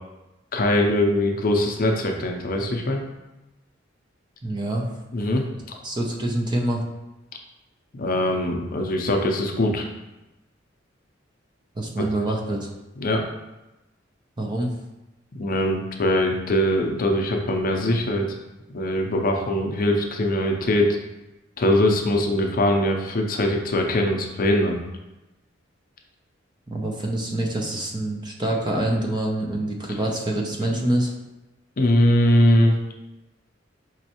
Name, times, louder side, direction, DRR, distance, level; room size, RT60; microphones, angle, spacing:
voice 1, 0.5-3.0 5.1-5.4 7.9-9.8 13.0-13.2 15.3-18.3 18.7-21.0 21.6-24.8 31.8-32.8, left 1 dB, 50° left, 2 dB, 0.6 m, -21 dB
voice 2, 4.4-5.0 5.8-6.8 11.7-12.7 14.4-14.7 26.7-31.1, right 1 dB, 25° right, 0 dB, 0.6 m, -26 dB
5.4 x 3.1 x 2.9 m, 1.0 s
head